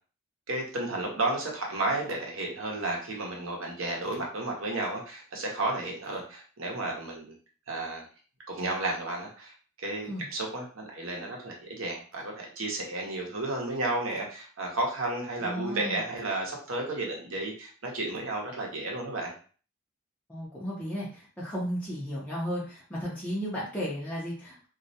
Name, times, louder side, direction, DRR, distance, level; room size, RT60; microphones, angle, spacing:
voice 1, 0.5-7.3 7.7-8.0 8.5-19.3, right 2 dB, 85° right, 0 dB, 0.8 m, -32 dB
voice 2, 15.4-16.0 20.3-24.7, equal, 5° left, -8 dB, 0.6 m, -34 dB
2.3 x 2.1 x 2.7 m, 0.40 s
head